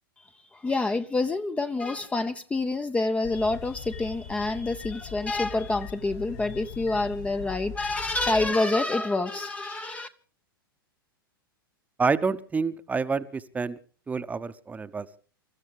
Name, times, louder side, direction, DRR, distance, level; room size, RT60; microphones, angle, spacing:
voice 1, 0.5-10.1, left 2 dB, 10° left, 0.8 m, -27 dB
sound 1, 3.2-8.5, left 8 dB, 50° left, 2.3 m, -41 dB
voice 2, 12.0-13.8 14.1-15.1, right 4 dB, 15° right, 1.0 m, -28 dB
28.5 x 14.0 x 3.5 m
figure-of-eight pair, 95°, 12 cm